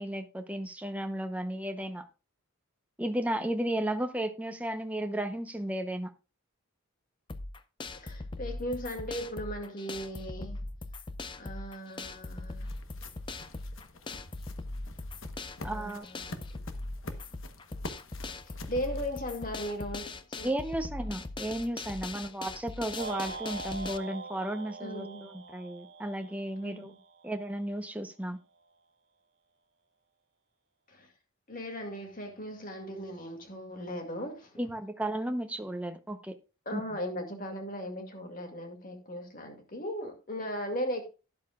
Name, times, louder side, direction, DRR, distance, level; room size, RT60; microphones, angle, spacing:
voice 1, 0.0-2.1 3.0-6.1 15.6-16.1 20.4-26.9 27.2-28.4 34.6-36.3 36.7-36.8, right 1 dB, 5° right, 0.8 m, -34 dB
sound 1, 7.3-24.0, left 2 dB, 20° left, 0.5 m, -40 dB
voice 2, 8.0-10.6 11.4-12.7 15.6-16.3 18.4-20.5 24.8-25.3 26.6-27.0 30.9-31.1 31.5-34.5 36.7-41.1, equal, 40° left, 2.2 m, -37 dB
sound 2, 11.5-20.0, left 2 dB, 65° left, 1.0 m, -48 dB
sound 3, 23.0-27.3, right 3 dB, 55° right, 0.8 m, -42 dB
12.0 x 10.5 x 2.3 m
head